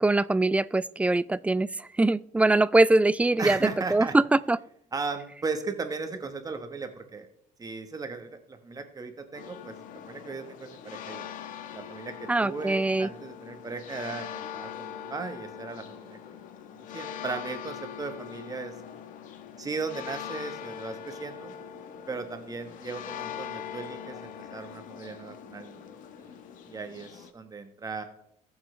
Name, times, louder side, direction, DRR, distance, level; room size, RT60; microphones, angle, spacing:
voice 1, 0.0-4.6 12.3-13.1, right 2 dB, 10° right, 18 dB, 0.3 m, -23 dB
voice 2, 3.4-4.1 4.9-7.3 7.6-9.7 10.1-11.3 11.7-16.2 16.7-18.7 19.6-21.5 22.1-25.8 26.2-26.4 26.7-28.0, right 4 dB, 30° right, 7 dB, 1.3 m, -37 dB
sound 1, 9.3-27.3, left 8 dB, 85° left, 1.2 m, -42 dB
21.0 x 7.2 x 3.3 m, 0.70 s
cardioid pair, 120°, 13 cm